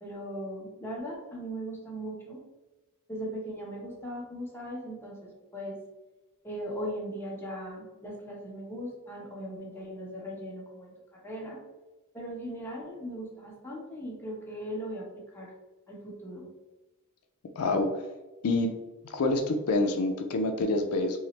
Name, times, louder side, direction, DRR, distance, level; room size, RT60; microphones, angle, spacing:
voice 1, 0.0-2.4 3.1-5.8 6.4-11.6 12.1-15.5 15.9-16.5, equal, 10° left, -4 dB, 1.0 m, -39 dB
voice 2, 17.6-18.0 18.4-18.7 19.0-21.3, left 2 dB, 70° left, 5 dB, 0.4 m, -27 dB
5.4 x 2.1 x 3.1 m, 1.1 s
head